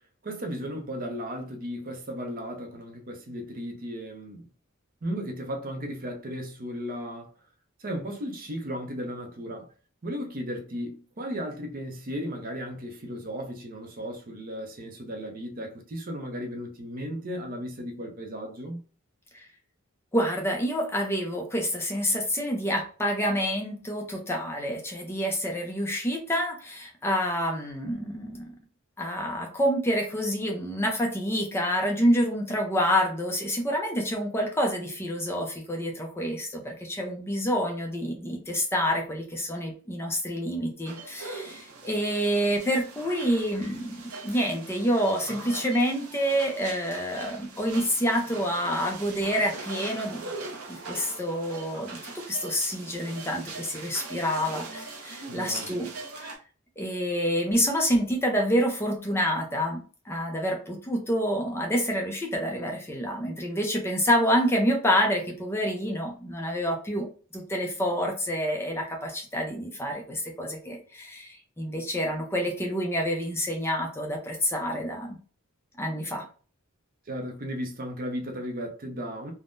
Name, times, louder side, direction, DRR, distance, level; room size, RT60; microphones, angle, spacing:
voice 1, 0.2-4.5 5.0-7.3 7.8-9.7 10.0-18.8 55.3-55.9 77.1-79.3, equal, 40° right, 0.6 m, -35 dB
voice 2, 20.1-28.5 29.0-50.3 50.7-55.9 56.2-56.3 56.8-67.1 67.3-75.2 75.8-76.2, equal, 10° left, 0.5 m, -28 dB
sound 1, 40.9-56.4, right 3 dB, 85° right, 0.7 m, -41 dB
3.5 x 2.1 x 2.5 m
head